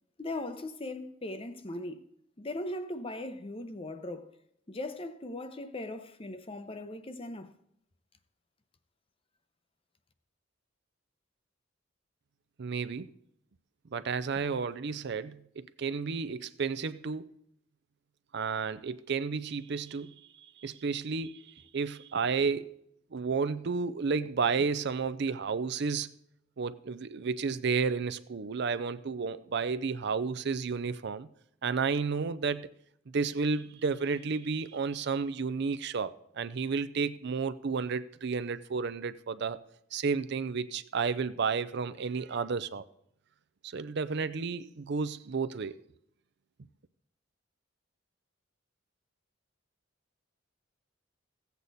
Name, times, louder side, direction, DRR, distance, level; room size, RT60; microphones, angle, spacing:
voice 1, 0.2-2.1 2.4-4.3 4.7-7.5, left 1 dB, 30° left, 0.7 m, -39 dB
voice 2, 12.6-13.1 13.9-17.3 18.3-20.1 20.6-22.8 23.1-26.1 26.6-31.3 31.6-32.7 33.1-39.6 39.9-42.8 43.6-45.7, right 5 dB, 60° right, 0.5 m, -32 dB
15.5 x 8.2 x 4.1 m
head